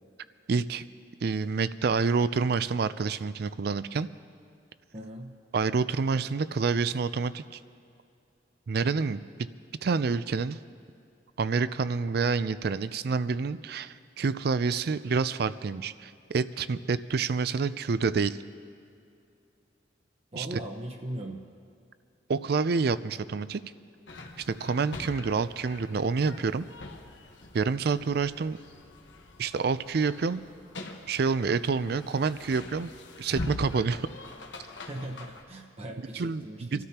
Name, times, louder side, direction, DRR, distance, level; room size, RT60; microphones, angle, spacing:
voice 1, 0.5-0.8 1.2-4.1 5.5-7.6 8.7-9.5 9.8-10.6 11.4-18.4 20.3-20.6 22.3-23.6 24.4-26.6 27.5-28.6 29.4-30.4 31.1-32.9 33.2-34.1 36.1-36.8, right 4 dB, 60° right, 15 dB, 0.4 m, -28 dB
voice 2, 4.9-5.3 20.3-21.4 34.8-36.8, right 1 dB, 35° right, 2 dB, 1.0 m, -39 dB
sound 1, 24.1-35.4, left 2 dB, 85° left, 1.3 m, -43 dB
26.5 x 13.0 x 2.9 m, 2.6 s
head